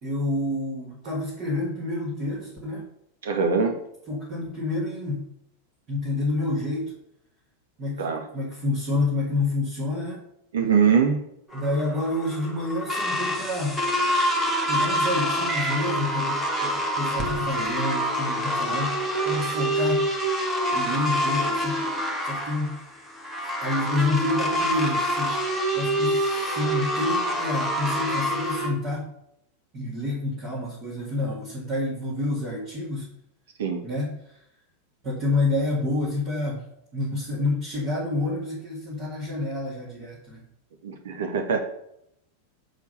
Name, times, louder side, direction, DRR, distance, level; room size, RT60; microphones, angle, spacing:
voice 1, 0.0-2.9 4.1-5.3 5.9-6.9 7.8-8.0 8.3-10.2 11.5-13.8 14.7-20.1 20.7-21.9 22.2-22.8 23.6-25.4 25.7-29.1 29.7-33.1 33.8-34.4 35.0-36.6 36.9-40.5, left 2 dB, 30° right, -6 dB, 2.5 m, -28 dB
voice 2, 3.2-3.7 8.0-8.2 10.5-11.2 33.6-33.8 40.8-41.6, right 6 dB, 60° right, 4 dB, 1.1 m, -22 dB
sound 1, 11.5-28.7, equal, 5° right, 1.7 m, -26 dB
6.5 x 4.8 x 6.7 m, 0.76 s
figure-of-eight pair, 90°, 0 cm